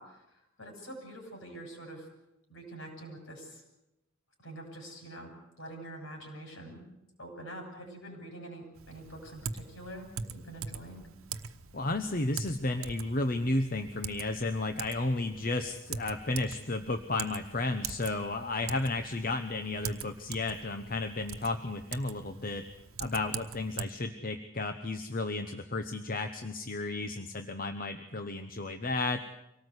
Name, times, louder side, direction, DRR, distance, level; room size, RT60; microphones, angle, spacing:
voice 1, 0.0-2.1 2.5-3.6 4.4-6.9 7.2-11.1, right 1 dB, 65° left, 3 dB, 7.5 m, -46 dB
Typing, 8.8-23.9, right 6 dB, 80° right, 1.1 m, -43 dB
voice 2, 11.7-22.6 23.0-29.2, left 2 dB, 40° left, 7 dB, 1.0 m, -33 dB
25.0 x 18.5 x 8.1 m, 0.91 s
head